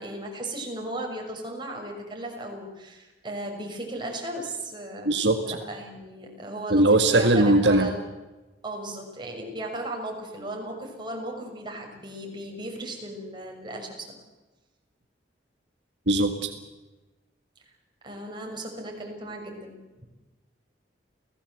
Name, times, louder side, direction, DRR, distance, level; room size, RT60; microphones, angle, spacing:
voice 1, 0.0-5.2 5.4-8.0 8.6-14.2 18.0-20.0, right 1 dB, 25° right, 1 dB, 6.3 m, -36 dB
voice 2, 5.0-5.6 6.7-7.9 16.1-16.5, right 2 dB, 75° right, 6 dB, 1.7 m, -20 dB
29.0 x 18.0 x 8.1 m, 1.1 s
head